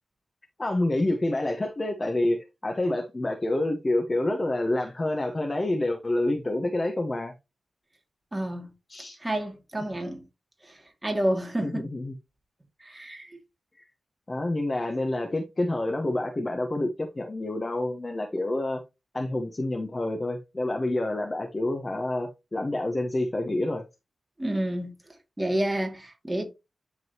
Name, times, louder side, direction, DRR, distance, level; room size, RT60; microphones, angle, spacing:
voice 1, 0.6-7.3 8.9-9.2 9.8-9.9 11.6-12.1 14.3-18.8 19.1-23.9, left 1 dB, 35° left, 1.2 m, -28 dB
voice 2, 8.3-8.7 9.2-10.2 11.0-11.9 12.9-13.4 24.4-24.9 25.4-26.4, right 1 dB, 20° right, 2.5 m, -29 dB
11.0 x 3.9 x 3.0 m
cardioid pair, 65°, 0 cm